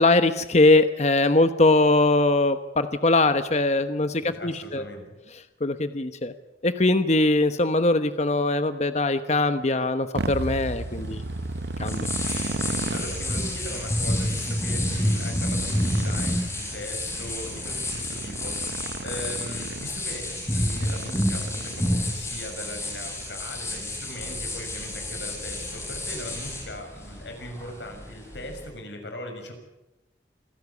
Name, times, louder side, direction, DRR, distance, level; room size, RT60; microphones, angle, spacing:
voice 1, 0.0-4.8 5.6-6.3 6.6-11.2 11.8-12.5, left 2 dB, 40° left, 10 dB, 1.0 m, -21 dB
voice 2, 4.2-5.1 12.5-12.6 12.9-29.5, left 1 dB, 80° left, 5 dB, 6.4 m, -39 dB
Motorcycle, 10.1-22.2, right 2 dB, 65° right, 0.8 m, -35 dB
sound 1, 10.2-28.7, left 1 dB, 15° left, 6.7 m, -30 dB
27.0 x 16.0 x 8.4 m, 0.94 s
head